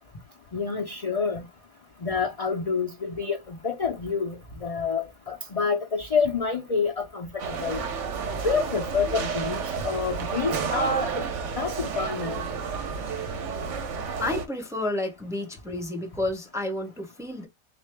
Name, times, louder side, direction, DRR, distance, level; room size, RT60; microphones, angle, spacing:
voice 1, 0.5-1.5 2.0-7.8 8.4-11.2 11.5-12.4, left 5 dB, 45° left, 0.4 m, -28 dB
sound 1, 7.4-14.5, right 5 dB, 65° right, 1.0 m, -31 dB
voice 2, 14.2-17.5, left 1 dB, 5° right, 0.6 m, -30 dB
3.7 x 2.6 x 3.2 m
omnidirectional pair, 1.4 m